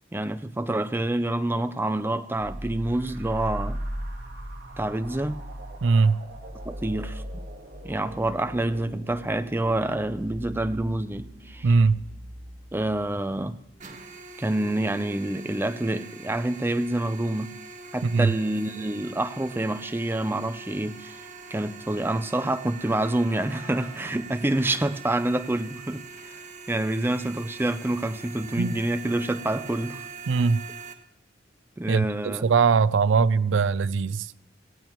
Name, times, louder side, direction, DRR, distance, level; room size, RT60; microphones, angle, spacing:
voice 1, 0.1-3.8 4.8-5.4 6.6-7.2 7.8-11.7 12.7-13.6 14.4-17.5 17.9-21.2 21.5-26.4 26.7-30.1 31.8-32.4, right 1 dB, 10° right, 0.5 m, -27 dB
sound 1, 2.4-13.7, equal, 60° right, 2.9 m, -38 dB
voice 2, 5.8-6.2 11.6-12.0 18.0-18.3 28.6-28.8 30.3-30.7 31.9-34.3, right 4 dB, 80° right, 0.4 m, -21 dB
sound 2, 8.0-25.7, equal, 70° left, 5.1 m, -56 dB
sound 3, 13.8-30.9, right 4 dB, 40° right, 1.4 m, -43 dB
17.5 x 16.5 x 3.0 m
head